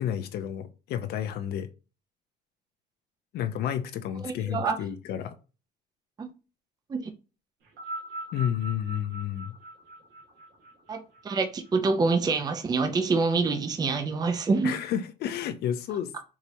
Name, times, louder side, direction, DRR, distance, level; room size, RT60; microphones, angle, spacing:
voice 1, 0.0-1.7 3.3-5.4 8.3-9.5 14.6-16.2, left 10 dB, 70° left, 0.5 m, -31 dB
voice 2, 4.2-4.8 6.2-6.3 6.9-7.1 10.9-14.7, right 4 dB, 25° right, 0.5 m, -26 dB
sound 1, 7.6-12.2 13.1-13.2, right 1 dB, 80° right, 1.6 m, -42 dB
4.7 x 2.8 x 2.7 m
cardioid pair, 110°, 17 cm